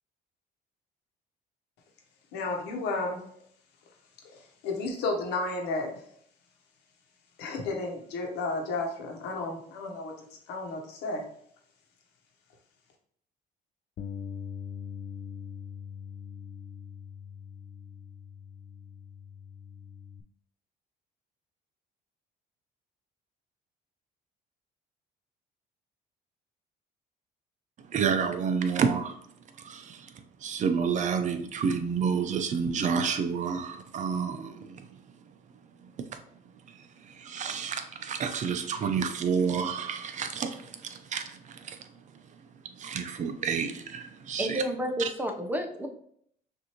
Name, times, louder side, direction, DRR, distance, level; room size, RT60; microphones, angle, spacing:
voice 1, 2.3-3.2 4.3-6.1 7.4-11.3, left 3 dB, 90° left, 2 dB, 1.1 m, -33 dB
Bass guitar, 14.0-20.2, left 7 dB, 45° left, 0.4 m, -42 dB
voice 2, 27.9-29.2 29.6-30.1 30.4-34.9 36.7-41.8 42.8-44.6 45.0-45.1, right 6 dB, 45° right, 7 dB, 0.6 m, -30 dB
voice 3, 44.4-45.9, equal, 10° right, 3 dB, 0.7 m, -30 dB
6.1 x 2.7 x 2.9 m, 0.67 s
cardioid pair, 110°, 17 cm